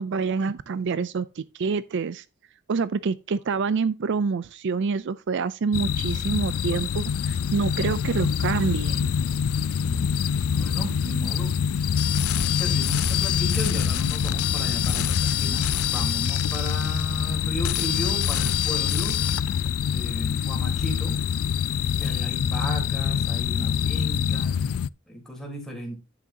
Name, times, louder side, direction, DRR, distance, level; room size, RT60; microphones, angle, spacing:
voice 1, 0.0-2.2 2.7-9.1, right 5 dB, 55° right, 0.4 m, -27 dB
sound 1, 5.7-24.9, left 7 dB, 70° left, 0.4 m, -26 dB
voice 2, 9.8-10.2 10.5-11.6 12.3-19.2 19.9-21.2 22.0-24.8 25.1-26.0, equal, ahead, 3.8 m, -35 dB
sound 2, 12.0-17.3 17.6-19.4, left 11 dB, 90° left, 0.8 m, -28 dB
10.5 x 8.6 x 2.8 m
head